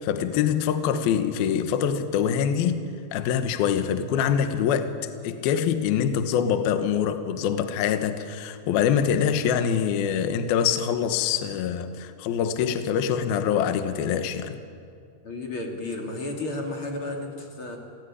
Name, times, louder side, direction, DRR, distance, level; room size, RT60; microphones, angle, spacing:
voice 1, 0.0-4.9 5.2-14.6, left 8 dB, 65° left, 2.8 m, -24 dB
voice 2, 15.2-17.8, left 2 dB, 35° left, 2.9 m, -32 dB
27.0 x 18.5 x 9.9 m
omnidirectional pair, 5.1 m